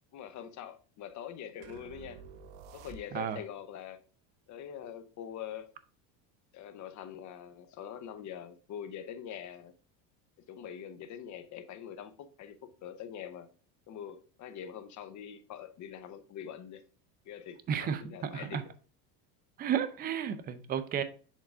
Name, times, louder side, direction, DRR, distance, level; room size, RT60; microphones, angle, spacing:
voice 1, 0.1-2.2 2.7-4.0 4.5-5.7 6.5-9.7 10.5-13.5 13.9-16.8 17.2-18.6, left 9 dB, 35° left, 0.8 m, -44 dB
sound 1, 1.6-3.5, right 6 dB, 50° right, 0.7 m, -50 dB
voice 2, 17.7-18.6 19.6-21.0, right 8 dB, 20° right, 0.4 m, -32 dB
7.3 x 3.8 x 3.5 m
supercardioid pair, 125°, 48 cm